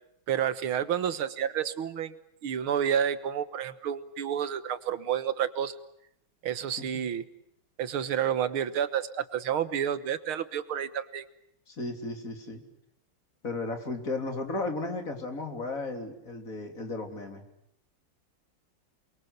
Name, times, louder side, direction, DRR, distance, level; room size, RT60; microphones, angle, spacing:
voice 1, 0.3-2.1 2.4-5.8 6.4-7.2 7.8-11.2, right 9 dB, 80° right, 13 dB, 2.1 m, -30 dB
voice 2, 11.7-12.6 13.4-17.4, left 3 dB, 40° left, 5 dB, 3.7 m, -35 dB
28.5 x 23.0 x 8.1 m, 0.77 s
omnidirectional pair, 2.3 m